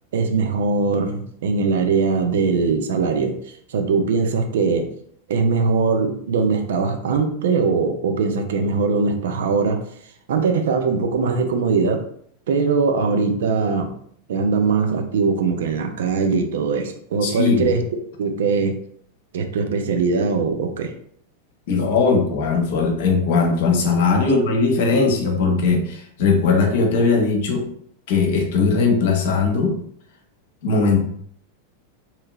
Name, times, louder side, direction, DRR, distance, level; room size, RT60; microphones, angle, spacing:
voice 1, 0.1-3.4 3.7-4.9 5.3-9.8 10.3-12.1 12.5-14.0 14.3-17.8 18.2-18.8 19.3-20.9 24.2-24.3, right 4 dB, 60° right, 5 dB, 0.4 m, -21 dB
voice 2, 17.2-17.7 21.7-27.6 28.1-29.7 30.6-31.0, left 4 dB, 55° left, 2 dB, 0.7 m, -19 dB
2.8 x 2.7 x 2.3 m, 0.63 s
figure-of-eight pair, 90°, 0 cm